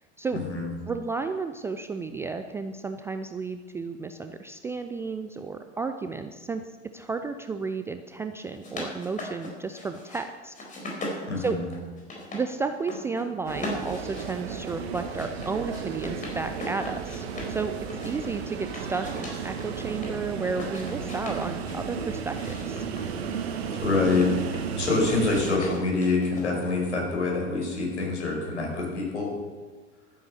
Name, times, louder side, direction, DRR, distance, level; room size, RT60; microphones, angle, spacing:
voice 1, 0.3-0.7 11.3-11.7 23.8-29.3, left 3 dB, 70° left, -1 dB, 5.3 m, -26 dB
voice 2, 0.9-6.6 6.9-10.5 11.0-11.6 12.3-17.7 18.0-22.8, right 4 dB, 10° right, 7 dB, 0.3 m, -32 dB
sound 1, 8.4-10.2 10.5-12.4 12.7-13.2 13.5-17.6 17.9-20.1 20.5-21.8 22.3-24.8 25.2-26.8, left 1 dB, 20° left, 4.3 m, -39 dB
sound 2, 13.5-25.6, right 6 dB, 60° right, 1.6 m, -34 dB
12.5 x 10.0 x 6.6 m, 1.3 s
figure-of-eight pair, 85°, 36 cm